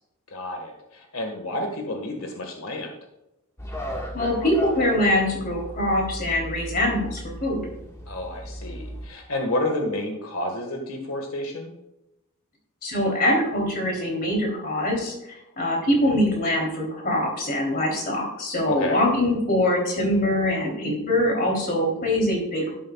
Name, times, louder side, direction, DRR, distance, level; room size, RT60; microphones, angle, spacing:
voice 1, 0.3-2.9 8.1-11.7 18.7-19.0, left 1 dB, 85° left, 3 dB, 1.7 m, -30 dB
sound 1, 3.6-9.1, equal, 15° left, 1.6 m, -36 dB
voice 2, 4.1-7.6 12.8-15.1 15.6-22.7, left 1 dB, 45° left, 0 dB, 3.3 m, -23 dB
12.0 x 11.5 x 2.4 m, 0.88 s
head